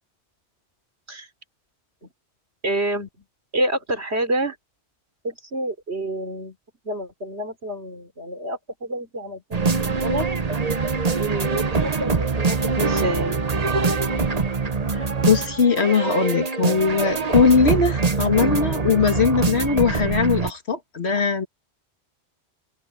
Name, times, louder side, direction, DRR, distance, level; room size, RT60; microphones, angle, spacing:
voice 1, 2.6-3.1 3.5-4.6 5.2-6.6 6.8-10.3 11.2-13.4, right 1 dB, 70° right, 3.8 m, -28 dB
sound 1, 9.5-20.5, right 4 dB, 35° right, 1.1 m, -24 dB
voice 2, 14.9-21.5, left 5 dB, 70° left, 2.1 m, -20 dB
omnidirectional pair, 1.1 m